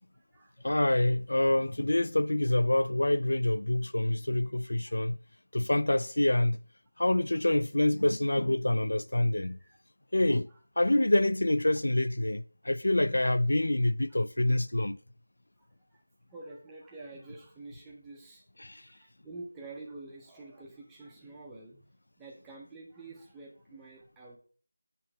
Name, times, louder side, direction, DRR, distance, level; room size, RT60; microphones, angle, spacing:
voice 1, 0.6-5.2 5.5-6.6 7.0-9.6 10.1-10.5 10.8-15.0 18.6-18.8, left 1 dB, 85° left, 0.3 m, -26 dB
voice 2, 16.3-18.4 18.9-21.8 22.2-24.4, right 2 dB, 5° right, 0.5 m, -47 dB
7.7 x 2.9 x 4.1 m
figure-of-eight pair, 180°, 0 cm